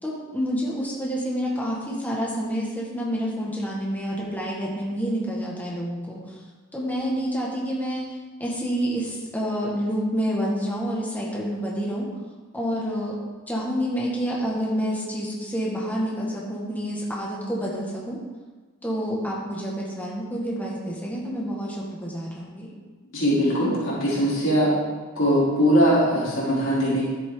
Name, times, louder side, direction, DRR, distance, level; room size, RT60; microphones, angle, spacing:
voice 1, 0.0-6.2 6.7-8.1 8.4-12.1 12.5-13.1 13.5-18.2 18.8-22.7, equal, 10° left, -5 dB, 1.9 m, -28 dB
voice 2, 23.1-24.7 25.2-27.1, equal, 60° left, -8 dB, 3.5 m, -21 dB
12.0 x 8.4 x 4.0 m, 1.3 s
head